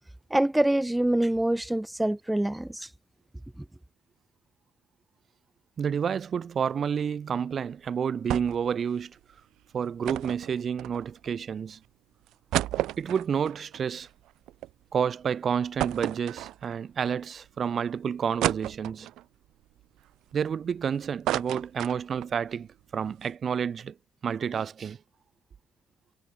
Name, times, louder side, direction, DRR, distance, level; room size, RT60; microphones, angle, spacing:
voice 1, 0.3-2.9, right 1 dB, 10° right, 0.9 m, -25 dB
voice 2, 5.8-9.2 9.7-11.8 13.0-14.1 14.9-19.1 20.3-24.0 24.2-25.0, right 7 dB, 50° right, 2.2 m, -30 dB
sound 1, 8.3-8.7 9.0-9.1 10.0-11.3 11.8-11.9 12.3-14.7 15.1-15.2 15.8-16.9 17.4-17.5 18.4-19.2 19.8-20.8 21.0-22.4 22.7-22.8 23.1-23.3, right 14 dB, 85° right, 1.7 m, -32 dB
cardioid pair, 90°, 0 cm